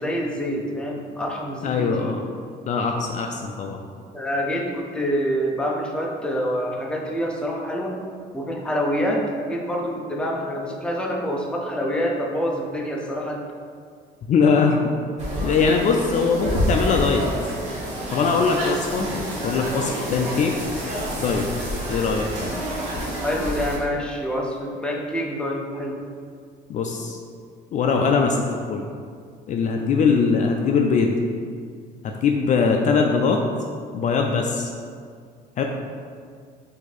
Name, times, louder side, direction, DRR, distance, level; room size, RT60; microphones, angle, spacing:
voice 1, 0.0-2.1 4.1-8.0 8.3-13.4 23.2-26.0, equal, 5° left, -1 dB, 0.6 m, -26 dB
voice 2, 1.6-2.2 2.7-3.8 14.3-14.9 15.4-17.2 18.1-19.1 19.4-20.5 21.2-21.5 21.9-22.3 26.7-27.2 27.7-28.4 28.7-28.9 29.5-31.2 32.0-33.4 33.9-34.7 35.6-35.7, left 5 dB, 45° left, 2 dB, 0.4 m, -21 dB
sound 1, 15.2-23.8, equal, 40° right, 1.4 m, -28 dB
4.7 x 2.7 x 4.0 m, 2.1 s
cardioid pair, 110°, 17 cm